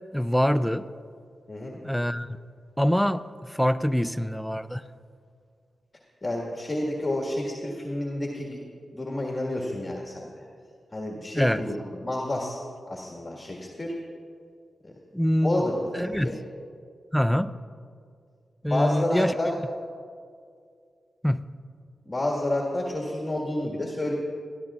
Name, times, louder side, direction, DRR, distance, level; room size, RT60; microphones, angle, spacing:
voice 1, 0.1-0.9 1.8-2.3 2.8-4.8 11.3-11.6 15.1-15.7 15.9-16.4 17.1-17.5 18.6-19.3 21.2-21.5, equal, ahead, 14 dB, 0.4 m, -24 dB
voice 2, 1.5-1.8 6.2-8.6 8.9-10.4 10.9-12.6 12.9-14.0 14.8-14.9 15.4-16.4 18.6-19.5 22.1-24.1, left 1 dB, 30° left, -2 dB, 1.7 m, -29 dB
19.5 x 13.5 x 2.4 m, 2.2 s
cardioid pair, 55°, 0 cm